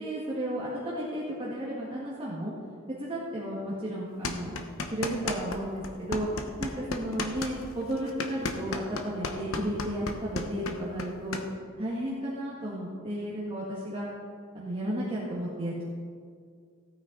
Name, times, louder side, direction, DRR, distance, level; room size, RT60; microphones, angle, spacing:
voice 1, 0.0-2.5 3.0-4.6 4.9-6.3 6.6-11.4 11.8-14.1 14.5-15.8, right 1 dB, 25° right, -7 dB, 1.7 m, -33 dB
sound 1, 4.2-5.6 5.8-11.4, left 3 dB, 80° left, 1.0 m, -33 dB
16.0 x 9.1 x 3.9 m, 2.1 s
head